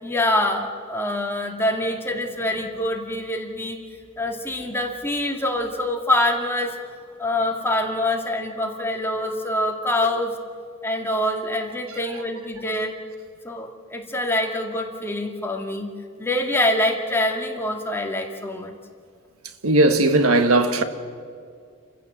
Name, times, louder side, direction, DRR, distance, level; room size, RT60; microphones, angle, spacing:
voice 1, 0.0-3.8 4.2-6.7 7.2-10.3 10.8-12.9 13.4-15.9 16.2-18.7, left 1 dB, 10° left, 2.1 m, -25 dB
voice 2, 19.6-20.8, right 2 dB, 80° right, 1.5 m, -17 dB
30.0 x 15.0 x 7.4 m
head